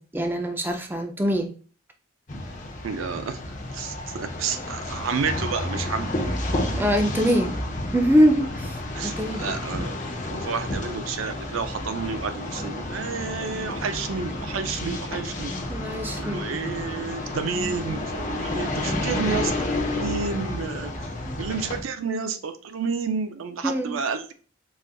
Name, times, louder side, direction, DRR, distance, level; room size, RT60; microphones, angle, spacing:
voice 1, 0.1-1.5 6.7-7.6 7.9-8.8 9.0-9.5 15.7-16.5 21.2-21.4 23.6-23.9, equal, 10° right, 5 dB, 0.4 m, -23 dB
sound 1, 2.3-21.8, left 1 dB, 40° left, 0.6 m, -31 dB
voice 2, 2.8-3.4 3.7-6.1 8.9-10.0 10.3-15.5 16.1-24.3, right 5 dB, 90° right, 9 dB, 0.4 m, -30 dB
4.1 x 2.4 x 2.2 m, 0.38 s
head